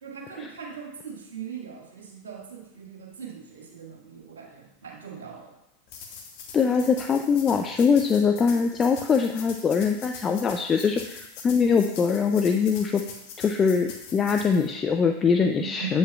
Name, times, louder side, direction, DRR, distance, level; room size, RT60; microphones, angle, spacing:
voice 1, 0.0-5.5, right 7 dB, 70° right, -2 dB, 1.8 m, -41 dB
sound 1, 5.9-14.7, left 5 dB, 50° left, 1.2 m, -43 dB
voice 2, 6.5-13.0 13.4-16.0, left 5 dB, 25° left, 5 dB, 0.4 m, -22 dB
7.8 x 7.4 x 2.4 m, 0.89 s
figure-of-eight pair, 85°, 0 cm